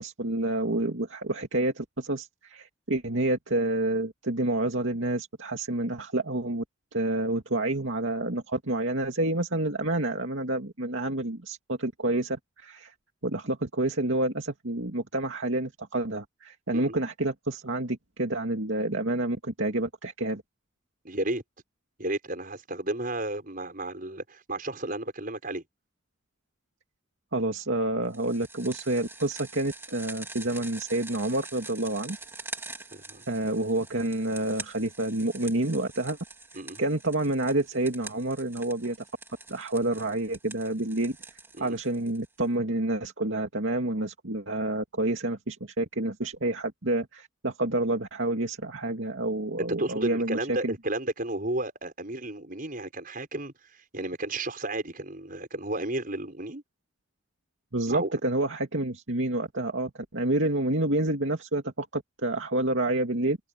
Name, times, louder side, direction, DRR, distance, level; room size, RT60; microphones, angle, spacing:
voice 1, 0.0-6.6 6.9-12.4 12.6-12.9 13.2-20.4 27.3-32.2 33.3-36.2 36.8-39.0 39.5-41.2 41.6-50.7 57.7-63.4, right 2 dB, 70° right, 2.5 m, -28 dB
voice 2, 21.0-21.4 22.0-25.6 32.9-33.2 36.5-36.8 41.6-41.8 49.6-56.6 57.9-58.1, right 2 dB, 45° right, 6.2 m, -33 dB
sound 1, 28.1-42.5, right 3 dB, 10° right, 3.3 m, -45 dB
head